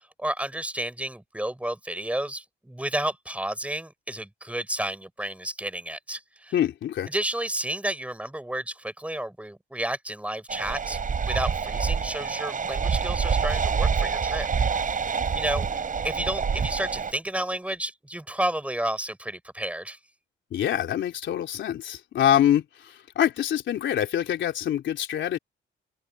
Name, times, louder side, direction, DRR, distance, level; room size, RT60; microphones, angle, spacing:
voice 1, 0.2-6.6 7.1-14.5 15.3-20.0, right 1 dB, 5° right, 7.5 m, -31 dB
voice 2, 6.5-7.1 20.5-25.4, left 10 dB, 70° left, 3.5 m, -25 dB
sound 1, 10.5-17.1, right 6 dB, 40° right, 7.3 m, -26 dB
open air
cardioid pair, 90°, 20 cm